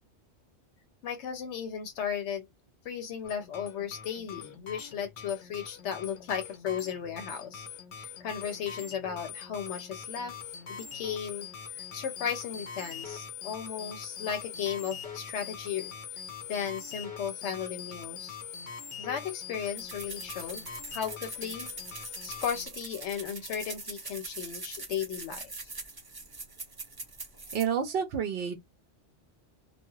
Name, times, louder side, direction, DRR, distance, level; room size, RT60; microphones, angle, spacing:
voice 1, 1.0-2.4 2.8-7.7 8.0-10.4 10.7-11.5 11.7-15.9 16.5-18.4 19.0-20.6 20.9-21.7 22.2-25.7, left 8 dB, 85° left, 0.9 m, -35 dB
sound 1, 3.2-22.7, left 7 dB, 55° left, 0.7 m, -43 dB
sound 2, 19.8-27.6, right 3 dB, 30° right, 0.5 m, -42 dB
voice 2, 27.5-28.6, right 7 dB, 65° right, 0.7 m, -29 dB
2.3 x 2.2 x 2.9 m
omnidirectional pair, 1.2 m